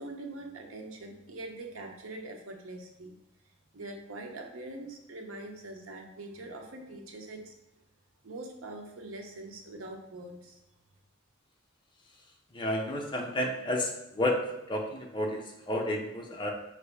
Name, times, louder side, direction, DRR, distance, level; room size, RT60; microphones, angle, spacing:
voice 1, 0.0-3.2 3.7-7.5 8.2-10.6, right 2 dB, 90° right, 3 dB, 0.7 m, -43 dB
voice 2, 12.5-14.4 14.7-16.5, left 1 dB, 20° left, 1 dB, 0.5 m, -31 dB
5.1 x 2.7 x 3.3 m, 0.91 s
head